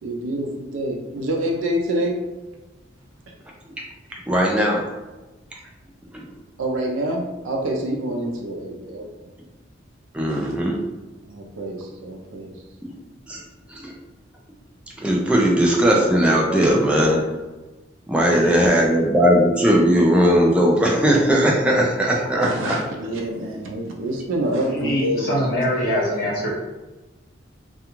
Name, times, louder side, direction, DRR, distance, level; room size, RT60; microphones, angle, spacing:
voice 1, 0.0-2.2 6.6-9.3 10.3-10.6 11.3-12.5 18.2-18.9 22.4-26.1 26.3-26.4, right 1 dB, 90° right, 0 dB, 0.5 m, -27 dB
voice 2, 4.3-4.8 10.1-10.8 13.3-13.4 13.7-13.9 15.0-17.2 18.1-22.5, equal, 5° right, -2 dB, 0.3 m, -18 dB
voice 3, 24.8-26.5, equal, 50° left, -6 dB, 1.1 m, -23 dB
2.4 x 2.3 x 2.9 m, 1.1 s
head